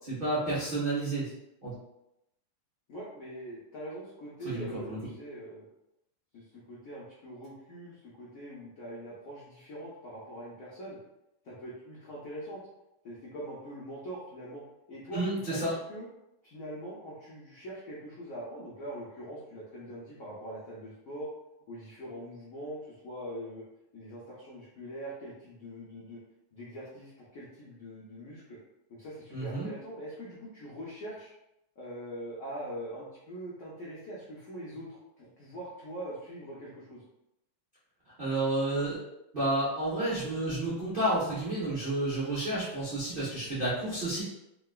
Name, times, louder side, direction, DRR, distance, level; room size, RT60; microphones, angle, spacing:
voice 1, 0.0-1.3 1.6-1.7 4.4-5.0 15.1-15.7 29.3-29.7 38.2-39.0 39.3-44.2, right 2 dB, 75° right, -10 dB, 0.5 m, -30 dB
voice 2, 2.9-5.6 6.3-11.0 11.4-12.6 13.0-14.6 14.9-15.6 15.9-16.1 16.4-21.3 21.7-23.6 23.9-26.2 26.5-28.6 28.9-31.3 31.8-37.0, equal, 80° left, -7 dB, 0.7 m, -43 dB
3.6 x 2.2 x 2.3 m, 0.88 s
omnidirectional pair, 2.3 m